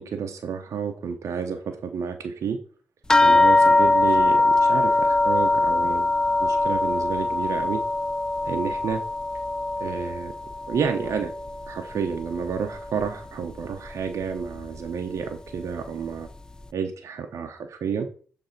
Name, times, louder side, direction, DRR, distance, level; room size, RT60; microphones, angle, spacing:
voice 1, 0.0-2.6 3.2-6.1 6.4-7.8 8.4-9.0 9.8-10.3 10.7-11.3 11.7-16.3 16.7-18.1, right 6 dB, 65° right, 5 dB, 0.8 m, -30 dB
sound 1, 3.1-11.9 12.2-13.1 13.9-14.0 14.4-14.5, left 2 dB, 15° left, 0.4 m, -22 dB
6.6 x 3.4 x 5.8 m, 0.42 s
supercardioid pair, 60°, 5 cm